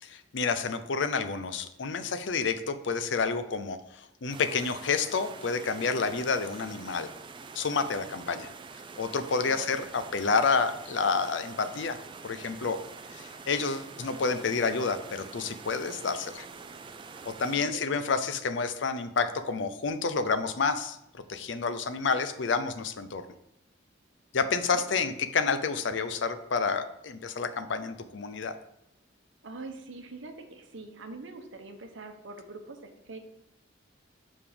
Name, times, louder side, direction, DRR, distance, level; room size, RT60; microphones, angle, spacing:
voice 1, 0.0-7.1 7.5-8.5 9.0-12.0 12.2-12.8 13.1-16.5 17.3-23.2 24.3-28.5, left 4 dB, 65° left, 11 dB, 0.5 m, -29 dB
sound 1, 4.3-17.6, right 4 dB, 25° right, 0.3 m, -46 dB
voice 2, 9.4-9.9 17.5-18.0 24.7-24.8 29.4-33.2, right 3 dB, 70° right, 5 dB, 0.9 m, -44 dB
5.4 x 4.9 x 5.1 m, 0.80 s
head